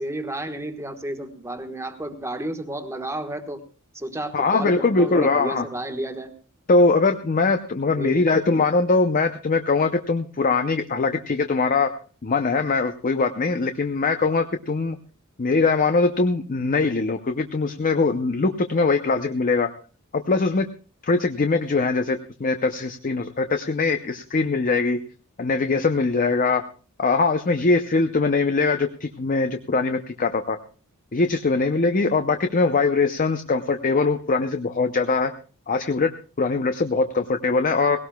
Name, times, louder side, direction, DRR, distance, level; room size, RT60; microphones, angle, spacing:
voice 1, 0.0-3.6 3.9-6.3 7.9-8.2, right 1 dB, 15° right, 6 dB, 1.3 m, -32 dB
voice 2, 4.3-5.7 6.7-11.9 12.2-15.0 15.4-19.7 20.1-20.7 21.0-25.0 25.4-26.6 27.0-30.6 31.1-35.3 35.7-36.1 36.4-38.0, left 3 dB, 40° left, 8 dB, 0.6 m, -22 dB
20.0 x 17.5 x 2.3 m, 0.38 s
head